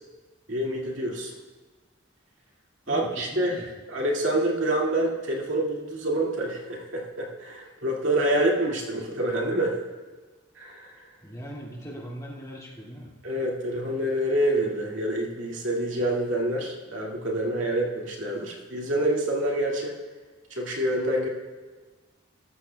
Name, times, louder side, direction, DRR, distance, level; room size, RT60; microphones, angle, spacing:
voice 1, 0.5-1.3 2.9-9.8 10.6-11.0 13.2-19.9 20.5-21.3, right 1 dB, 75° right, -2 dB, 2.1 m, -27 dB
voice 2, 2.9-3.7 11.2-13.1, equal, 15° left, -4 dB, 2.1 m, -40 dB
19.5 x 14.0 x 2.2 m, 1.3 s
head